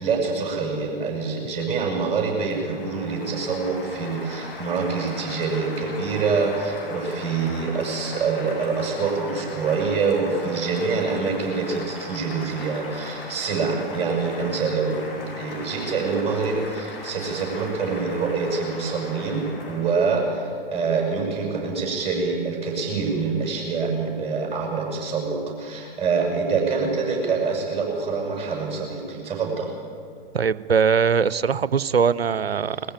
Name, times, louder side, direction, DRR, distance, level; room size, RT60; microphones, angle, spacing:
voice 1, 0.0-29.7, right 4 dB, 20° right, -1 dB, 7.4 m, -25 dB
Applause, 1.5-20.4, left 2 dB, 70° left, 7.1 m, -39 dB
voice 2, 30.3-32.8, right 6 dB, 90° right, 18 dB, 0.6 m, -21 dB
21.0 x 15.0 x 9.0 m, 2.3 s
figure-of-eight pair, 105°, 29 cm